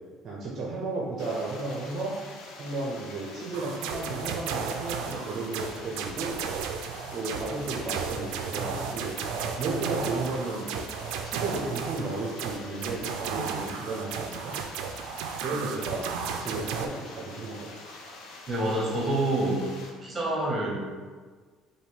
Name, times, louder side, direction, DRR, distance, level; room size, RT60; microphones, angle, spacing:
voice 1, 0.2-2.1 2.6-6.3 7.1-9.2 9.6-10.7 11.2-14.6 15.4-16.1 16.4-17.8, right 3 dB, 35° right, -4 dB, 0.5 m, -33 dB
sound 1, 1.2-19.9, left 2 dB, 65° left, 0.6 m, -46 dB
sound 2, 3.5-16.9, right 6 dB, 85° right, 0.3 m, -34 dB
voice 2, 18.5-19.7 20.0-20.8, right 1 dB, 10° right, -5 dB, 1.0 m, -27 dB
3.5 x 2.6 x 4.4 m, 1.5 s
cardioid pair, 180°, 0 cm